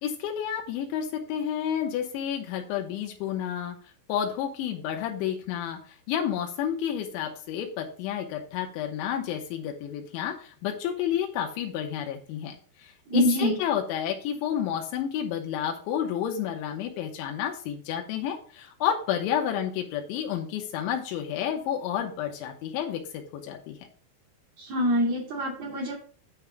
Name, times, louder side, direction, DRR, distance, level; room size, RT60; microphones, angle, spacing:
voice 1, 0.0-3.8 4.1-5.8 6.1-23.8, left 9 dB, 85° left, 2 dB, 3.4 m, -30 dB
voice 2, 13.1-13.6 24.6-25.9, equal, 45° right, -5 dB, 3.0 m, -25 dB
9.3 x 3.6 x 6.9 m, 0.43 s
omnidirectional pair, 5.3 m